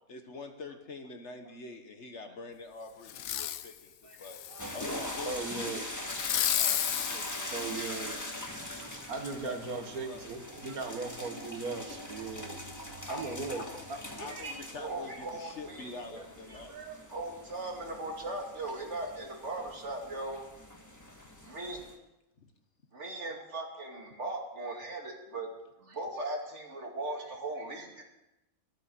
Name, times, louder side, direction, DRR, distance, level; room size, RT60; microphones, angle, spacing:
voice 1, 0.1-3.9 4.2-4.4 4.7-5.8 9.3-10.2 13.1-13.9 14.2-16.7 22.4-22.5, left 3 dB, 55° left, 6 dB, 1.5 m, -45 dB
Fireworks, 3.1-3.7 4.2-5.3 6.1-8.4 9.0-9.1, left 11 dB, 75° left, 1.1 m, -33 dB
voice 2, 4.1-4.7 6.6-7.3 7.6-8.5 8.8-9.2 10.6-11.0 13.0-13.4 14.2-16.1 17.1-20.4 21.4-21.8 22.9-25.5 25.8-28.0, right 2 dB, 50° right, 1 dB, 2.7 m, -40 dB
sound 1, 4.6-21.9, left 1 dB, 15° left, 1.4 m, -42 dB
voice 3, 5.3-5.9 6.6-6.8 7.1-8.2 9.1-12.5 13.1-13.6 13.9-14.3 16.1-16.2 16.5-17.0 21.6-21.7 23.2-23.3 24.2-24.3, right 4 dB, 85° right, 5 dB, 1.9 m, -39 dB
13.0 x 9.0 x 7.8 m, 0.95 s
omnidirectional pair, 1.5 m